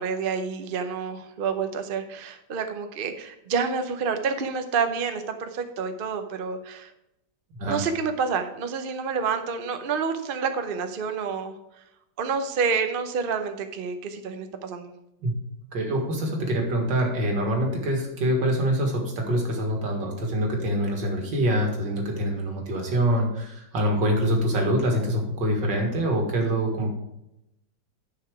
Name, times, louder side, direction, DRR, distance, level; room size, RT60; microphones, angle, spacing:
voice 1, 0.0-6.9 7.7-11.5 12.2-14.9, right 5 dB, 50° right, 7 dB, 0.7 m, -28 dB
voice 2, 15.7-26.9, right 1 dB, 80° right, 1 dB, 2.5 m, -25 dB
9.9 x 5.9 x 4.8 m, 0.86 s
omnidirectional pair, 1.9 m